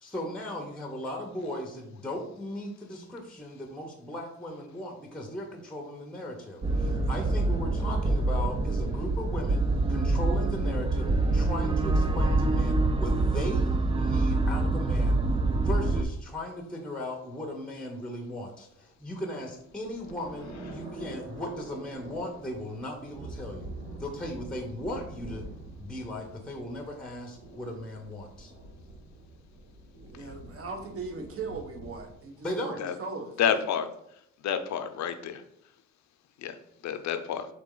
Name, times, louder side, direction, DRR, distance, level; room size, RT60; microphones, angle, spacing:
voice 1, 0.0-9.6 9.9-23.7 24.0-25.5 25.8-28.5 32.4-32.8, left 1 dB, 5° left, 2 dB, 0.7 m, -37 dB
sound 1, 6.6-16.0, right 2 dB, 20° right, 0.4 m, -26 dB
sound 2, 19.0-32.1, right 1 dB, 85° right, 1.6 m, -45 dB
voice 2, 30.0-33.6, right 4 dB, 50° right, 3 dB, 1.0 m, -39 dB
voice 3, 33.4-33.9 34.4-35.4 36.4-36.6 36.8-37.5, left 8 dB, 65° left, 8 dB, 0.6 m, -30 dB
4.2 x 2.9 x 3.8 m, 0.75 s
cardioid pair, 90°, 30 cm